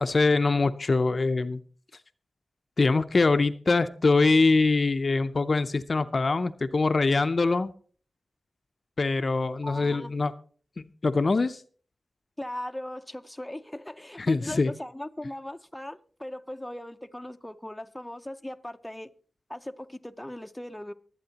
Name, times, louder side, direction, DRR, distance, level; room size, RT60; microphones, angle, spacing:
voice 1, 0.0-1.6 2.8-7.7 9.0-10.3 10.8-11.6 14.2-14.7, left 3 dB, 55° left, 0.5 m, -23 dB
voice 2, 9.6-10.1 12.4-19.1 19.5-20.9, left 1 dB, 10° left, 0.6 m, -39 dB
23.5 x 8.6 x 2.9 m
wide cardioid pair, 70°, 0 cm